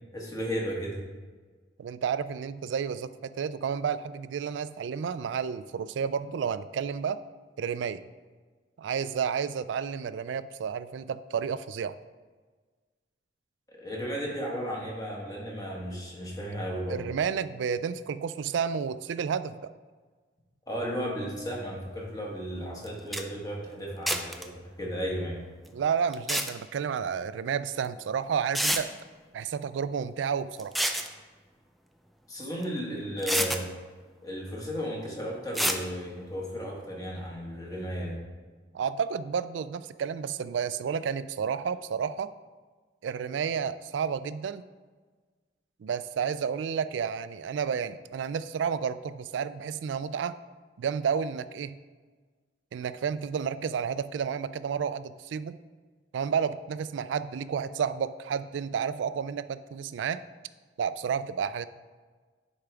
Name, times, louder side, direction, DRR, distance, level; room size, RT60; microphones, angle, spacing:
voice 1, 0.1-1.0 13.7-17.0 20.7-25.4 32.3-33.7 34.2-38.2, equal, 20° left, -3 dB, 1.5 m, -34 dB
voice 2, 1.8-7.2 7.6-8.0 8.8-12.0 16.9-19.7 25.7-28.9 29.3-30.8 38.7-42.3 43.0-44.6 45.8-50.4 50.8-51.8 52.7-55.6 56.1-60.2 60.8-61.7, right 7 dB, 85° right, 14 dB, 0.3 m, -31 dB
sound 1, 22.8-22.9 23.1-23.2 24.1-24.4 26.1-26.5 27.8-27.9 28.5-28.8 30.6-31.1 32.6-32.7 33.2-33.6 35.5-35.8, equal, ahead, 0.4 m, -27 dB
10.0 x 4.9 x 3.4 m, 1.4 s
head